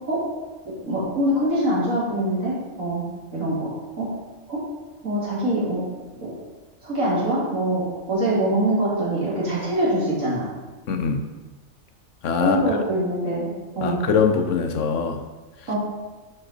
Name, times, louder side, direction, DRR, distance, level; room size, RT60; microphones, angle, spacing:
voice 1, 0.6-3.0 3.3-4.1 4.5-4.6 5.0-5.8 6.2-6.3 6.8-10.5 12.4-13.5 13.7-14.0 15.7-15.8, right 1 dB, 85° right, -8 dB, 3.4 m, -24 dB
voice 2, 10.9-11.2 12.2-12.6 13.8-15.2, left 6 dB, 70° left, 6 dB, 1.1 m, -22 dB
10.0 x 5.3 x 4.4 m, 1.2 s
omnidirectional pair, 1.4 m